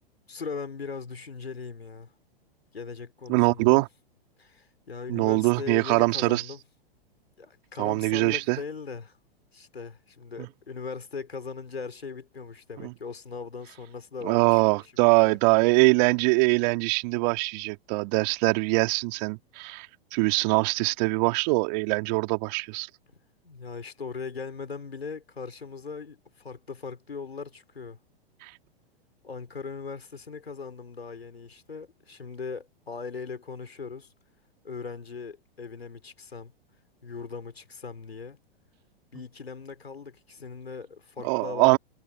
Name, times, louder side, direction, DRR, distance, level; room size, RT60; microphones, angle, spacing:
voice 1, 0.3-2.1 2.7-3.8 4.4-6.6 7.4-9.2 9.5-15.7 23.4-28.0 29.2-34.1 34.6-36.5 37.0-38.4 39.1-41.8, left 5 dB, 85° left, 4.3 m, -39 dB
voice 2, 3.3-3.9 5.1-6.4 7.8-8.6 10.4-10.5 12.8-12.9 14.2-19.9 20.1-22.9 28.4-28.5 41.2-41.8, right 30 dB, 45° right, 2.5 m, -23 dB
hypercardioid pair, 105°, 30 cm